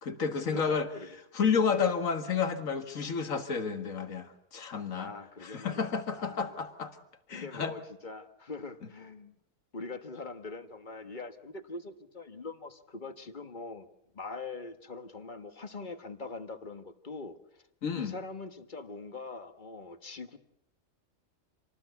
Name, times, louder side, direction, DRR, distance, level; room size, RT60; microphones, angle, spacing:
voice 1, 0.0-0.9 1.3-5.1 5.4-7.0 7.3-7.7 17.8-18.1, left 6 dB, 70° left, 8 dB, 2.1 m, -31 dB
voice 2, 0.5-1.1 5.0-6.5 7.3-9.4 9.7-13.9 14.1-17.6 18.0-20.4, left 3 dB, 35° left, 9 dB, 1.5 m, -43 dB
27.0 x 18.5 x 8.2 m, 0.80 s
omnidirectional pair, 1.4 m